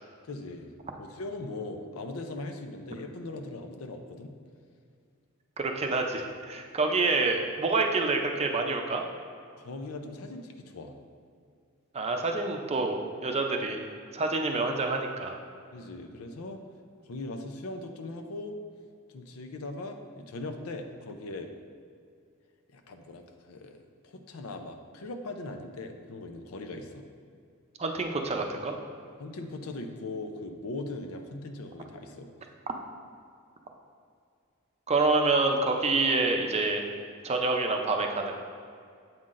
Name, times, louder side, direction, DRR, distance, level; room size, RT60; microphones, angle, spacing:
voice 1, 0.3-0.7 1.0-4.3 9.6-11.0 15.7-16.6 17.0-18.5 19.1-21.5 22.7-27.0 29.2-32.3, left 2 dB, 90° left, 5 dB, 0.6 m, -40 dB
voice 2, 5.6-9.0 11.9-13.8 14.1-15.4 27.8-28.7 34.9-36.8 37.2-38.3, right 3 dB, 30° right, 3 dB, 0.5 m, -27 dB
7.8 x 5.6 x 2.5 m, 2.3 s
head